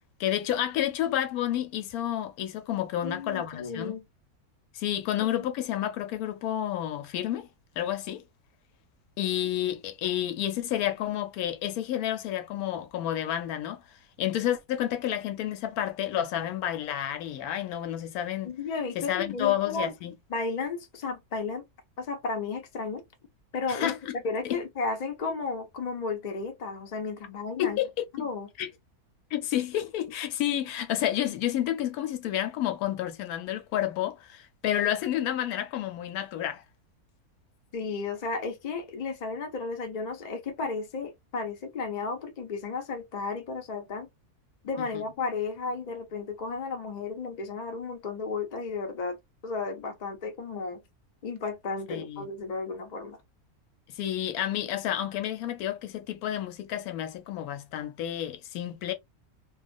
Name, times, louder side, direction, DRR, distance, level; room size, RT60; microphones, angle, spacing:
voice 1, 0.2-4.0 4.7-7.5 7.8-8.2 9.2-13.8 14.2-18.5 18.9-20.2 23.7-24.1 27.6-28.3 28.6-28.7 29.3-36.6 44.9-45.0 51.9-52.3 53.9-58.9, left 11 dB, 80° left, 1.0 m, -30 dB
voice 2, 3.0-4.0 5.2-5.3 18.4-19.9 20.3-21.6 22.0-23.0 23.5-23.9 24.2-27.8 28.2-28.5 37.7-44.1 44.6-49.2 49.4-50.8 51.2-53.2, left 4 dB, 55° left, 0.4 m, -33 dB
2.3 x 2.3 x 2.4 m
omnidirectional pair, 1.6 m